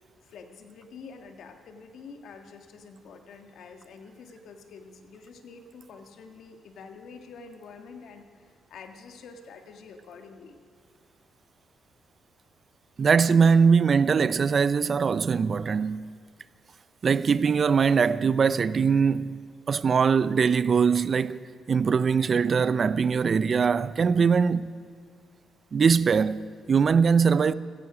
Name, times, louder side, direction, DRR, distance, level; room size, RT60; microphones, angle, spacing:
voice 1, 0.2-10.6, left 5 dB, 70° left, 1.6 m, -47 dB
voice 2, 13.0-16.1 17.0-19.4 19.7-24.7 25.7-27.5, right 6 dB, 45° right, 0.5 m, -22 dB
16.0 x 15.0 x 5.0 m
cardioid pair, 90°, 0 cm